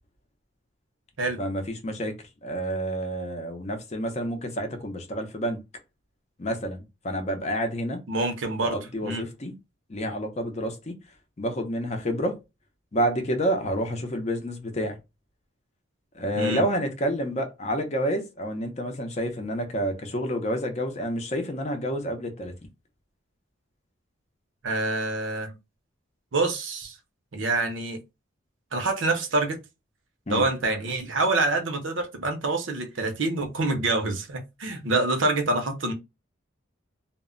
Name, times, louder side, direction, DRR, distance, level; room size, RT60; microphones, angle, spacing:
voice 1, 1.4-2.1 2.4-5.6 6.4-8.0 8.6-9.5 9.9-10.9 11.4-12.4 12.9-15.0 16.1-22.5 30.3-30.4, equal, 35° left, 0.5 m, -29 dB
voice 2, 8.1-9.2 16.4-16.6 24.6-25.5 26.3-26.9 27.3-28.0 28.7-29.6 30.3-35.9, right 2 dB, 70° right, 0.6 m, -26 dB
2.1 x 2.1 x 3.6 m
head